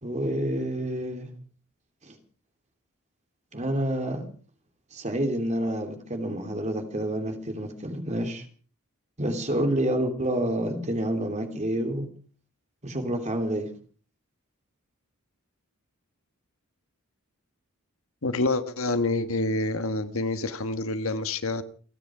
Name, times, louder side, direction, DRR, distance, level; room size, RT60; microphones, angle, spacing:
voice 1, 0.0-1.3 2.0-2.2 3.5-4.2 4.9-8.5 9.2-12.1 12.8-13.7, right 1 dB, 30° right, 3.0 m, -28 dB
voice 2, 18.2-21.6, left 2 dB, 65° left, 1.5 m, -27 dB
29.5 x 9.9 x 5.0 m
head